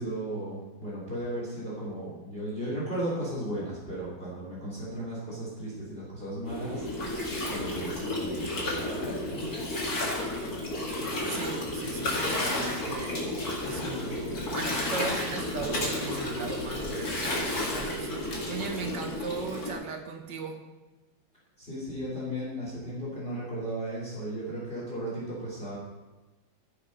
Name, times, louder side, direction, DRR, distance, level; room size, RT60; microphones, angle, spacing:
voice 1, 0.0-7.1 7.4-9.5 21.6-25.8, right 1 dB, 25° left, -6 dB, 3.7 m, -35 dB
Gurgling, 6.4-19.7, left 1 dB, 50° left, 2.7 m, -32 dB
voice 2, 11.3-13.3 13.6-14.2 14.5-20.6, right 5 dB, 65° right, 3 dB, 1.9 m, -37 dB
14.0 x 6.5 x 5.5 m, 1.1 s
omnidirectional pair, 2.2 m